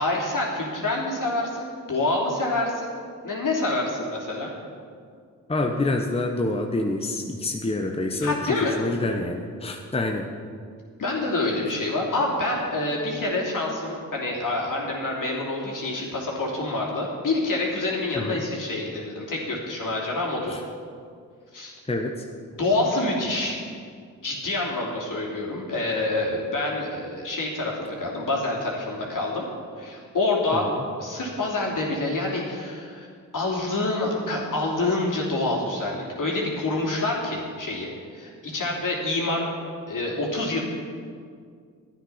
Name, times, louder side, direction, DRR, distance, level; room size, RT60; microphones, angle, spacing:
voice 1, 0.0-2.9 3.2-4.5 8.2-8.8 11.0-20.6 21.5-21.7 22.5-23.6 24.2-29.4 29.8-30.7 31.0-33.1 33.3-39.5 39.9-40.6, left 2 dB, 60° left, -2 dB, 3.0 m, -27 dB
voice 2, 5.5-10.3 18.2-18.4 20.5-20.6 21.9-22.2 30.6-30.7, left 2 dB, 15° left, 2 dB, 1.0 m, -27 dB
11.5 x 9.2 x 5.7 m, 2.2 s
supercardioid pair, 50°, 35 cm